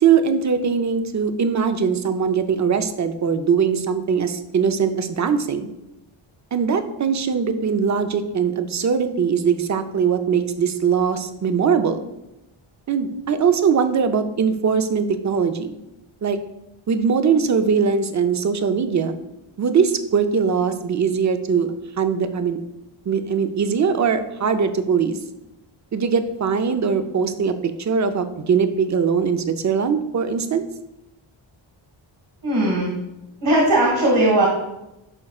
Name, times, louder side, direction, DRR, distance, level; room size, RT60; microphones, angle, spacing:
voice 1, 0.0-5.7 6.5-12.0 12.9-15.8 16.2-16.4 16.9-19.1 19.6-21.7 22.0-22.6 23.1-25.2 25.9-30.6, right 6 dB, 35° right, 9 dB, 0.5 m, -21 dB
voice 2, 32.4-32.9 33.4-34.5, right 1 dB, 55° right, -2 dB, 1.8 m, -18 dB
11.0 x 4.8 x 2.4 m, 0.92 s
wide cardioid pair, 130°, 49 cm